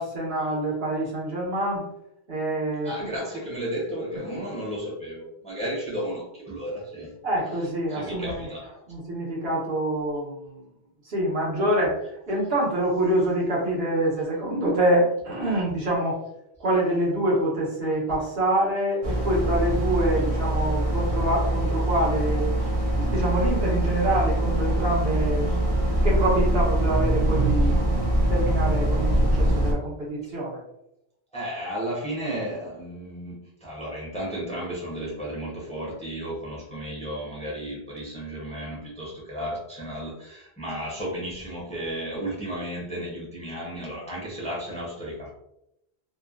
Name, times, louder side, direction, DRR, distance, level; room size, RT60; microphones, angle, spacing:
voice 1, 0.0-1.8 2.3-2.9 7.2-8.5 8.9-10.6 11.0-12.0 12.3-16.2 16.6-22.5 22.9-25.5 26.0-28.0 28.3-30.6, right 1 dB, 70° right, -5 dB, 1.2 m, -26 dB
voice 2, 2.8-7.1 7.9-9.0 12.4-12.5 22.6-22.7 25.5-25.6 27.6-27.7 28.0-28.1 31.3-45.3, equal, 10° left, -5 dB, 0.6 m, -33 dB
sound 1, 19.0-29.7, right 1 dB, 50° right, 0.4 m, -23 dB
2.9 x 2.1 x 2.4 m, 0.83 s
omnidirectional pair, 1.1 m